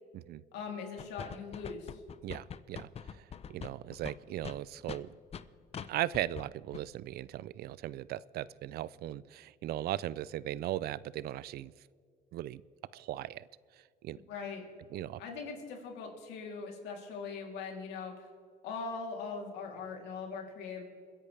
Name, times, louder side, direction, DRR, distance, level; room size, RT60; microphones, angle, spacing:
voice 1, 0.5-2.0 14.3-14.6 15.2-18.3 18.6-20.9, left 5 dB, 90° left, 1 dB, 3.3 m, -41 dB
sound 1, 1.0-5.4 5.7-5.9 6.1-6.5 6.7-6.8, left 7 dB, 35° left, 0.7 m, -43 dB
voice 2, 2.2-5.1 5.9-11.7 12.3-12.6 12.9-13.5 14.0-14.2 14.9-15.2, right 14 dB, 65° right, 20 dB, 0.5 m, -38 dB
29.5 x 10.5 x 3.4 m, 2.2 s
cardioid pair, 110°, 17 cm